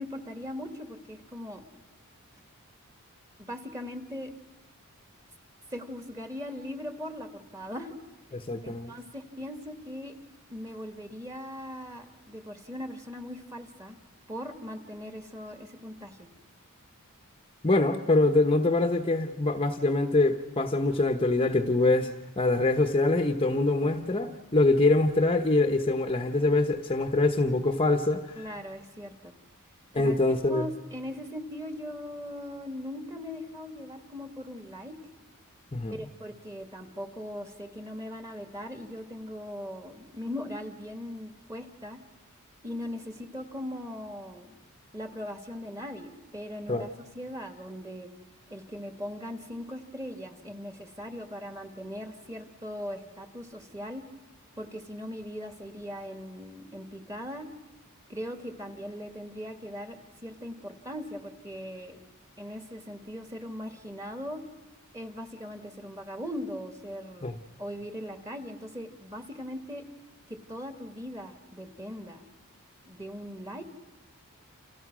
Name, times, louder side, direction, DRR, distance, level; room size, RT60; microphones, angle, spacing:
voice 1, 0.0-1.7 3.4-4.3 5.7-8.0 8.6-10.1 10.5-14.0 14.3-16.3 28.4-29.4 29.9-35.0 35.9-42.0 42.6-44.6 44.9-48.1 48.5-54.0 54.6-57.5 58.1-62.0 62.4-64.4 64.9-67.3 67.6-69.8 70.3-72.2 72.8-73.6, equal, 15° right, 7 dB, 2.3 m, -39 dB
voice 2, 8.3-8.9 17.6-22.1 22.4-28.4 29.9-30.7 35.7-36.0 46.7-46.9 67.2-67.3, left 2 dB, 25° left, 6 dB, 1.1 m, -24 dB
29.5 x 28.0 x 6.2 m, 1.3 s
head